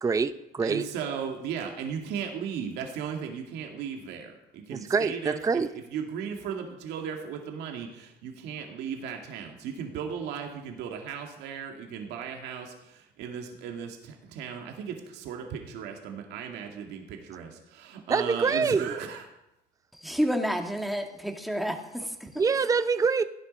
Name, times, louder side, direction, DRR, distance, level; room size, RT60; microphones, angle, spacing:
voice 1, 0.0-0.9 4.7-5.7 18.1-18.9 22.4-23.2, right 5 dB, 20° right, 12 dB, 0.6 m, -25 dB
voice 2, 0.6-5.6 5.9-19.2, right 7 dB, 90° right, 2 dB, 2.2 m, -36 dB
voice 3, 19.9-22.4, equal, ahead, 3 dB, 2.0 m, -30 dB
16.0 x 11.0 x 5.3 m, 0.90 s
cardioid pair, 110°, 17 cm